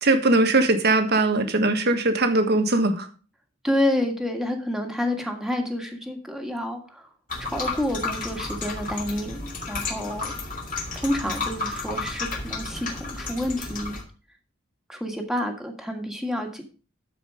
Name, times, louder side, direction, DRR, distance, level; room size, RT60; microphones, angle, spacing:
voice 1, 0.0-3.1, right 2 dB, 55° right, 7 dB, 1.5 m, -20 dB
voice 2, 3.6-7.1 7.4-10.3 10.9-14.0 14.9-16.6, left 1 dB, ahead, 3 dB, 1.7 m, -29 dB
sound 1, 7.3-14.0, left 3 dB, 45° left, 2.4 m, -32 dB
12.5 x 5.0 x 5.2 m, 0.37 s
head